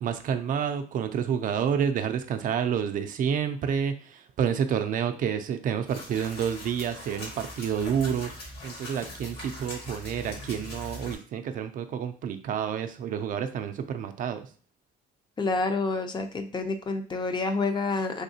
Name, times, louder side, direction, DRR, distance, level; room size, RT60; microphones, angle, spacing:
voice 1, 0.0-8.3 8.6-14.5, right 8 dB, 55° right, 8 dB, 0.4 m, -29 dB
sound 1, 5.9-11.2, left 1 dB, 70° left, 1.8 m, -41 dB
voice 2, 15.4-18.2, left 3 dB, 25° left, 7 dB, 0.5 m, -28 dB
3.5 x 2.8 x 2.7 m, 0.39 s
cardioid pair, 110°, 17 cm